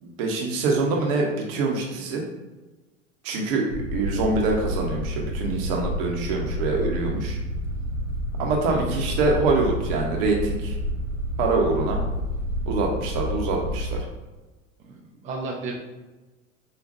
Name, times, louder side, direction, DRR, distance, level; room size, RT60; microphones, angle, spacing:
voice 1, 0.0-2.2 3.2-3.6 3.9-7.4 8.4-10.7 11.4-12.0 12.7-14.0, right 3 dB, 45° right, 0 dB, 1.0 m, -25 dB
sound 1, 3.7-14.0, equal, 75° right, 0.6 m, -29 dB
voice 2, 14.8-15.7, right 3 dB, 20° right, -2 dB, 0.5 m, -34 dB
5.2 x 2.5 x 2.6 m, 1.2 s
figure-of-eight pair, 90°, 39 cm